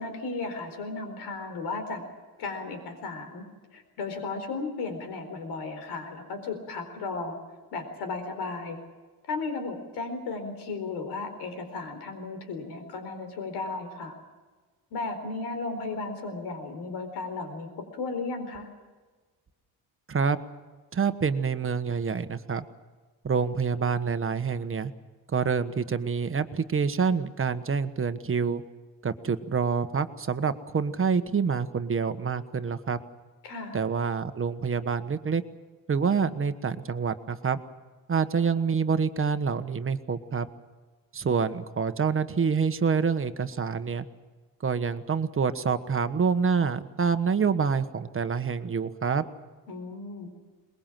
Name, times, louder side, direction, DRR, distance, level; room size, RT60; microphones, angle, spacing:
voice 1, 0.0-2.0 2.4-3.4 3.7-7.4 7.7-8.8 9.3-14.1 14.9-18.7 33.4-33.8 49.7-50.3, left 3 dB, 90° left, 6 dB, 4.4 m, -35 dB
voice 2, 20.9-22.7 23.2-24.9 25.3-28.6 29.0-33.0 33.7-35.4 35.9-37.6 38.1-40.5 41.1-44.0 44.6-49.2, right 5 dB, 35° right, 10 dB, 1.3 m, -27 dB
22.5 x 21.0 x 7.6 m, 1.4 s
cardioid pair, 105°, 39 cm